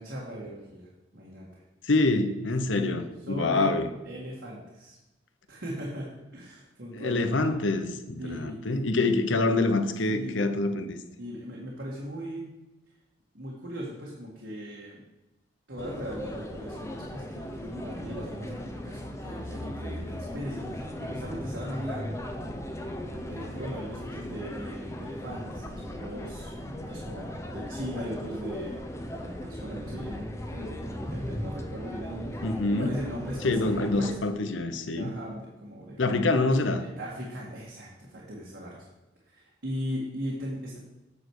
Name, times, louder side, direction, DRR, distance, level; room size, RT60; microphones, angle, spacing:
voice 1, 0.0-1.6 2.7-2.9 3.3-3.7 4.1-5.0 5.5-7.3 8.2-8.6 9.1-9.2 10.1-10.4 11.2-12.5 13.3-15.0 15.7-22.2 23.1-32.4 32.7-34.2 34.9-36.5 36.8-38.9 39.3-40.8, equal, 70° right, -5 dB, 1.8 m, -38 dB
voice 2, 1.8-3.9 6.9-11.0 32.4-32.9 33.4-35.2 36.0-36.8, left 2 dB, 80° left, 9 dB, 0.8 m, -26 dB
sound 1, 15.8-34.2, equal, 15° left, 0.7 m, -37 dB
8.9 x 6.3 x 4.8 m, 1.0 s
head